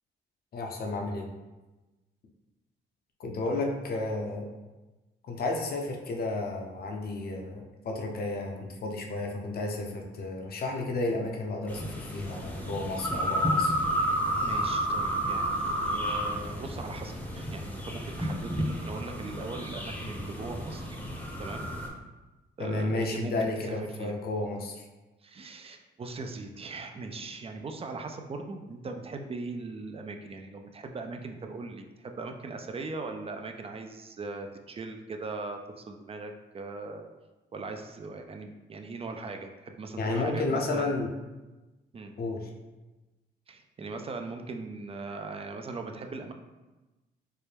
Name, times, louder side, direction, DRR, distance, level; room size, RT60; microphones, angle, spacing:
voice 1, 0.5-1.3 3.2-4.5 5.2-13.8 22.6-24.9 40.0-41.1 42.2-42.5, left 2 dB, 50° left, 1 dB, 0.7 m, -32 dB
sound 1, 11.7-21.9, equal, 5° left, 0.7 m, -31 dB
voice 2, 14.4-20.9 21.4-21.7 22.6-24.1 25.2-37.1 37.5-41.0 41.9-42.1 43.5-46.3, right 3 dB, 30° right, 5 dB, 0.4 m, -39 dB
4.6 x 2.1 x 3.3 m, 1.1 s
cardioid pair, 90°, 20 cm